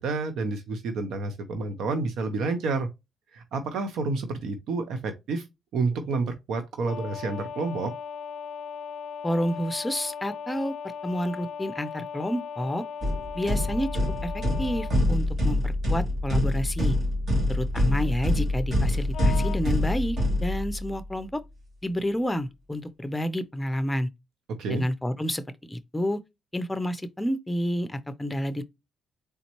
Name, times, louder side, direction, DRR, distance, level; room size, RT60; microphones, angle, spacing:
voice 1, 0.0-2.9 3.3-5.5 5.7-7.9 24.6-24.8, right 3 dB, 75° right, 0.6 m, -29 dB
sound 1, 6.9-14.9 19.1-19.6, left 7 dB, 65° left, 0.3 m, -37 dB
voice 2, 9.2-12.8 13.3-13.9 14.2-17.0 17.5-21.4 21.8-24.1 24.7-26.2 26.5-28.6, equal, 10° left, 0.5 m, -29 dB
sound 2, 13.0-21.0, left 1 dB, 55° right, 2.6 m, -25 dB
4.1 x 3.4 x 2.9 m
cardioid pair, 90°, 0 cm